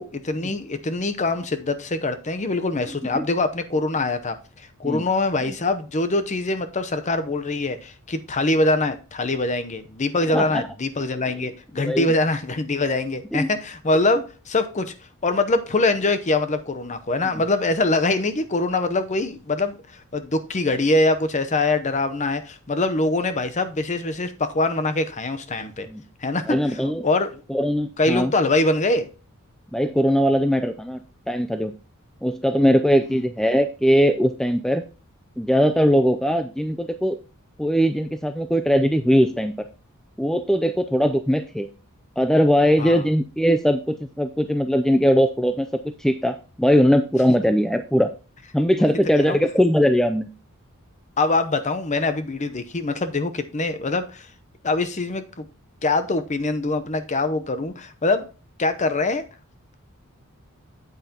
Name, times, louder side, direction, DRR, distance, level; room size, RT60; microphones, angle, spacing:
voice 1, 0.0-14.9 15.2-25.9 26.2-26.6 27.0-27.4 28.0-29.1 33.1-33.2 42.8-43.0 49.2-49.4 51.2-54.3 54.6-55.5 55.8-58.3 58.6-59.2, left 2 dB, 35° left, 0.7 m, -23 dB
voice 2, 10.3-10.6 11.4-11.5 11.9-12.1 13.3-13.5 25.9-26.0 26.5-27.0 27.5-28.3 29.7-31.0 31.3-31.7 32.2-34.8 35.4-37.2 37.6-39.5 40.2-41.7 42.2-48.1 48.5-50.3, equal, ahead, 0.4 m, -20 dB
8.9 x 8.1 x 2.9 m
head